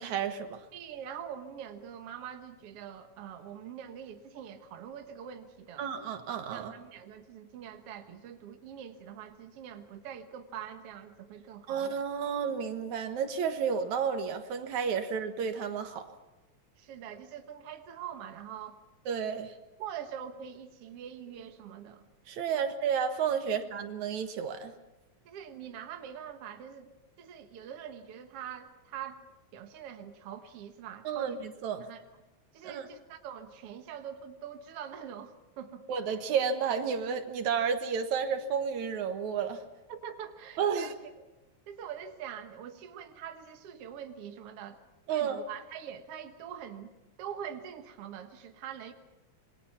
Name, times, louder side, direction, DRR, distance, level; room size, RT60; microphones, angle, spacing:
voice 1, 0.0-0.6 5.8-6.7 11.7-16.0 19.1-19.5 22.3-24.7 31.0-31.9 32.6-32.9 35.9-39.6 40.6-40.9 45.1-45.4, right 7 dB, 80° right, 7 dB, 2.8 m, -31 dB
voice 2, 0.7-5.9 6.5-11.9 15.0-15.1 16.8-18.8 19.8-22.0 22.5-22.7 23.5-23.6 25.3-26.9 27.2-29.3 29.5-31.4 31.9-32.0 32.5-35.8 39.9-41.3 41.7-44.8 45.1-46.9 47.2-48.9, right 9 dB, 60° right, 7 dB, 2.2 m, -44 dB
27.0 x 22.5 x 5.8 m, 1.0 s
omnidirectional pair, 3.3 m